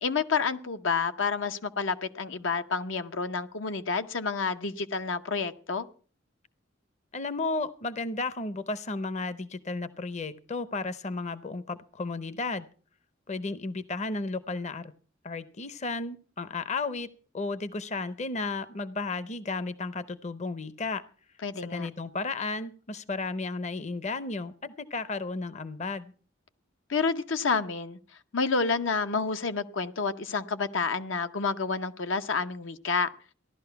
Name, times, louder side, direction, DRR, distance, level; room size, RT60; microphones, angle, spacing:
voice 1, 0.0-5.9 21.4-21.9 26.9-28.0 28.3-33.1, left 4 dB, 75° left, 0.8 m, -29 dB
voice 2, 7.1-12.7 13.3-14.9 15.2-17.1 17.3-21.0 21.6-26.1, left 3 dB, 35° left, 0.7 m, -33 dB
15.5 x 11.5 x 5.7 m
head